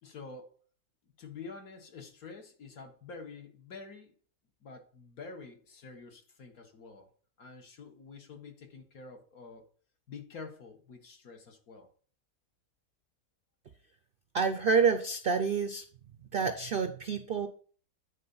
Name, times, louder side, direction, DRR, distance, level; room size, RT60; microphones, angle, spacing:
voice 1, 0.0-0.5 1.2-4.1 4.6-7.1 7.4-9.7 10.1-11.9, left 4 dB, 70° left, 4 dB, 1.8 m, -48 dB
voice 2, 14.3-15.8 16.3-17.5, right 5 dB, 65° right, 9 dB, 0.5 m, -28 dB
9.4 x 4.1 x 5.5 m, 0.44 s
omnidirectional pair, 1.6 m